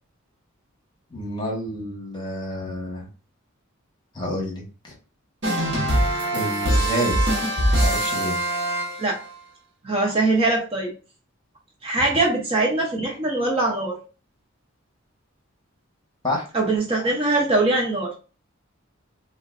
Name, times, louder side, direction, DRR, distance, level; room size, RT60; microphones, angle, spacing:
voice 1, 1.1-3.1 4.1-4.9 6.3-7.4 7.7-8.4 12.0-12.1 16.2-16.4, left 1 dB, 20° left, -2 dB, 1.0 m, -29 dB
sound 1, 5.4-9.3, right 1 dB, 60° right, 1.1 m, -22 dB
voice 2, 9.8-10.9 11.8-14.0 16.5-18.1, right 2 dB, 30° right, 0 dB, 0.5 m, -22 dB
3.7 x 2.3 x 2.3 m, 0.35 s
head